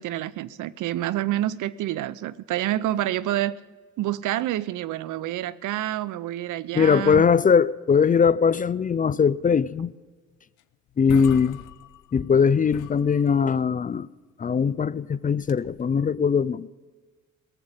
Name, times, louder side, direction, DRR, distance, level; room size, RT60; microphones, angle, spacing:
voice 1, 0.0-3.6 4.0-7.2, right 13 dB, 80° right, 0.7 m, -28 dB
voice 2, 6.7-9.9 11.0-11.6 12.1-14.1 14.4-16.7, left 6 dB, 30° left, 0.4 m, -21 dB
sound 1, 10.6-10.7 10.9-12.4 12.7-13.7 15.3-15.9, left 13 dB, 85° left, 0.8 m, -41 dB
17.5 x 7.7 x 9.6 m
cardioid pair, 90°, 30 cm